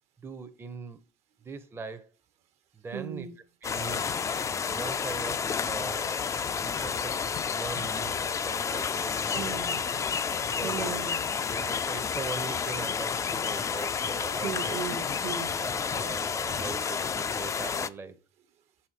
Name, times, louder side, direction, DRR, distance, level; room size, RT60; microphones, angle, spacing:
voice 1, 0.2-1.0 1.4-2.1 2.8-3.3 3.6-4.1 4.6-6.3 6.6-9.5 10.6-11.0 11.5-14.8 15.6-18.2, right 4 dB, 20° right, 0.6 m, -41 dB
voice 2, 2.9-3.3 9.3-9.8 10.6-11.2 14.4-15.6, right 8 dB, 65° right, 1.1 m, -36 dB
sound 1, 3.6-17.9, left 6 dB, 25° left, 0.4 m, -30 dB
6.7 x 4.2 x 4.5 m
cardioid pair, 105°, 12 cm